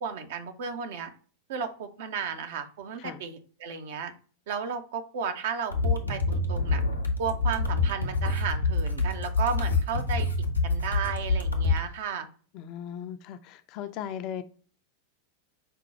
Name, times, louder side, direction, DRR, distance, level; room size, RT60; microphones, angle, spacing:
voice 1, 0.0-1.1 1.5-4.1 4.5-6.8 7.2-10.3 10.6-12.3, right 6 dB, 55° right, 0.6 m, -34 dB
sound 1, 5.7-11.8, left 3 dB, 90° left, 0.7 m, -27 dB
voice 2, 12.5-14.4, left 9 dB, 40° left, 0.4 m, -37 dB
5.2 x 2.2 x 4.1 m
figure-of-eight pair, 90°, 0 cm